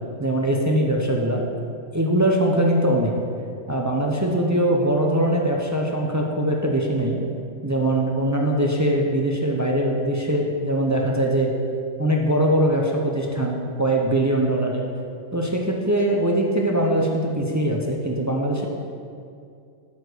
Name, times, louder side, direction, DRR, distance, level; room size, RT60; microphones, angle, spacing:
voice 1, 0.2-1.4 1.9-3.1 3.7-7.2 7.6-11.5 12.0-14.8 15.3-18.7, right 1 dB, 20° right, -1 dB, 0.5 m, -22 dB
8.2 x 4.9 x 6.6 m, 2.4 s
omnidirectional pair, 1.4 m